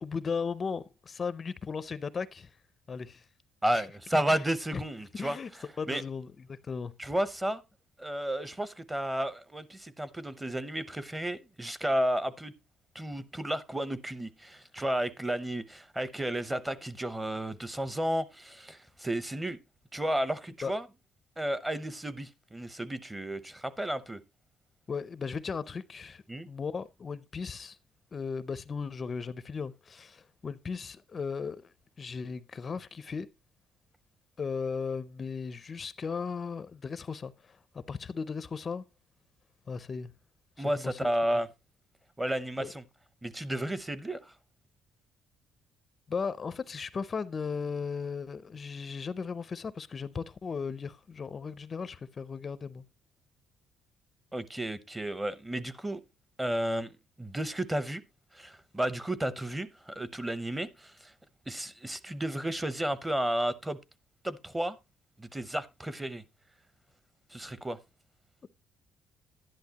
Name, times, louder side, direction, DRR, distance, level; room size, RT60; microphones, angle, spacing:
voice 1, 0.0-2.5 2.9-3.2 3.7-3.9 4.3-4.4 4.7-4.8 5.2-5.5 5.8-6.9 20.6-20.7 24.9-27.8 28.1-31.7 32.0-33.3 34.4-38.8 39.7-40.1 40.6-41.0 42.6-42.7 46.1-52.8, left 5 dB, 30° left, 0.4 m, -36 dB
voice 2, 3.6-6.0 7.0-7.6 8.0-12.5 12.9-19.6 19.9-20.9 21.4-24.2 26.3-26.5 40.6-41.5 42.2-42.8 43.2-44.3 54.3-56.0 56.4-58.0 58.3-61.1 61.5-63.8 64.2-64.8 65.2-66.2 67.3-67.8, right 1 dB, 10° right, 0.7 m, -32 dB
11.0 x 10.5 x 2.8 m
cardioid pair, 130°, 0 cm